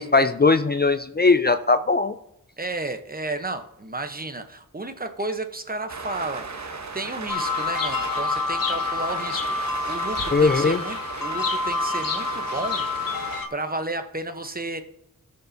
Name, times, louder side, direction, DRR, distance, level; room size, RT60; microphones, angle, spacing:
voice 1, 0.0-2.1 10.3-10.8, left 3 dB, 30° left, 10 dB, 0.5 m, -19 dB
voice 2, 2.6-6.5 6.9-12.9 13.5-14.8, right 2 dB, 25° right, 7 dB, 0.9 m, -32 dB
sound 1, 5.9-13.4, right 4 dB, 55° right, 1.1 m, -36 dB
sound 2, 7.3-13.5, left 3 dB, 80° left, 1.0 m, -27 dB
17.5 x 6.6 x 2.7 m, 0.82 s
wide cardioid pair, 75°, 33 cm